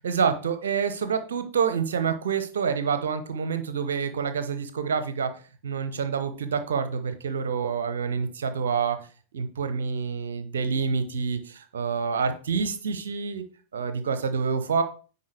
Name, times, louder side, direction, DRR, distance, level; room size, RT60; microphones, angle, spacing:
voice 1, 0.0-5.3 5.6-9.0 9.3-13.4 13.7-14.8, right 6 dB, 65° right, 10 dB, 0.9 m, -27 dB
9.6 x 4.2 x 3.4 m, 0.38 s
figure-of-eight pair, 90°, 0 cm